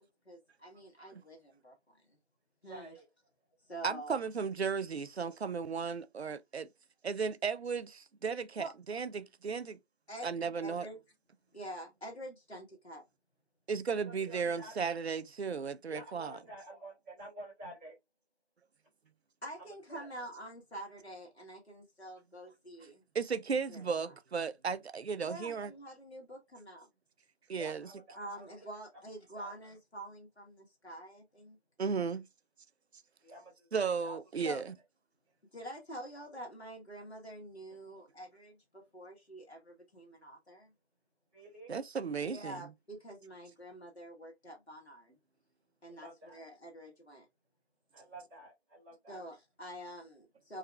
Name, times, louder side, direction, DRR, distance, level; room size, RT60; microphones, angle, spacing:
voice 1, 0.0-2.2 2.6-3.0 3.7-4.2 8.6-8.7 10.1-10.3 10.6-11.0 11.5-13.0 19.4-23.0 23.7-24.1 25.2-26.9 28.1-31.6 34.4-34.6 35.5-40.7 42.2-45.1 45.8-47.3 49.1-50.6, right 1 dB, 70° left, 1.5 m, -47 dB
voice 2, 2.7-3.0 14.0-14.9 15.9-17.9 19.9-20.1 27.5-28.5 29.3-29.5 33.2-33.7 34.0-34.2 41.3-41.8 45.9-46.4 47.9-49.2, right 1 dB, ahead, 1.2 m, -50 dB
voice 3, 3.8-6.7 7.0-9.8 10.2-10.9 13.7-16.4 23.1-25.7 27.5-27.9 31.8-32.3 33.7-34.7 41.7-42.6, right 5 dB, 70° right, 0.5 m, -35 dB
4.8 x 2.5 x 2.2 m
figure-of-eight pair, 165°, 34 cm